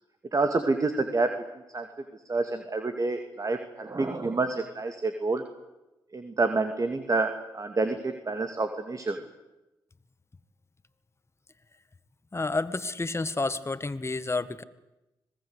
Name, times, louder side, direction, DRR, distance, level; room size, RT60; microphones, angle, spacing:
voice 1, 0.3-1.3 1.7-1.9 2.3-5.4 6.1-9.2, right 3 dB, 40° right, 7 dB, 2.4 m, -28 dB
voice 2, 12.3-14.6, left 3 dB, 30° left, 13 dB, 1.8 m, -30 dB
26.0 x 19.5 x 8.3 m, 0.98 s
hypercardioid pair, 40°, 9 cm